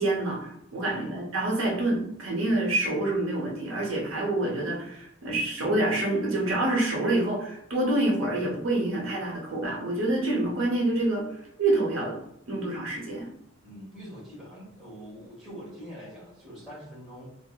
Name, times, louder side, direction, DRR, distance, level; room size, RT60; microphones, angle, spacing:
voice 1, 0.0-11.3 11.6-12.2 12.5-13.3, right 2 dB, 80° right, -1 dB, 0.7 m, -27 dB
voice 2, 2.9-3.2 4.5-4.7 10.4-10.6 13.6-17.3, equal, 5° right, -8 dB, 1.3 m, -44 dB
3.8 x 2.3 x 2.2 m, 0.78 s
head